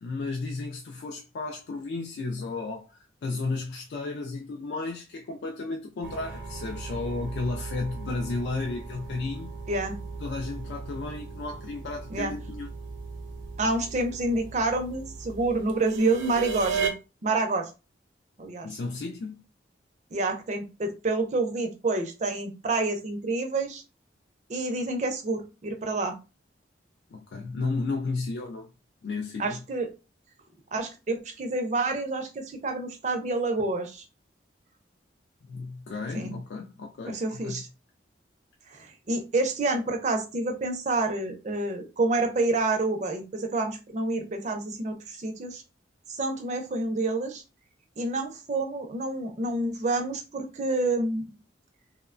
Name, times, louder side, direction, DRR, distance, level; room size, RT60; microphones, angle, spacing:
voice 1, 0.0-9.5 10.2-12.7 18.6-19.5 27.1-28.7 29.0-29.6 35.5-37.6, left 3 dB, 65° left, 0.3 m, -33 dB
sound 1, 6.0-16.9, right 5 dB, 80° right, 0.6 m, -37 dB
voice 2, 13.6-16.9 17.2-17.7 18.4-18.7 20.1-23.8 24.5-26.1 29.4-29.9 30.7-34.0 36.1-36.3 37.1-37.7 38.7-45.6 46.1-47.4 48.0-51.3, right 2 dB, 35° right, 0.4 m, -28 dB
2.9 x 2.1 x 2.4 m
head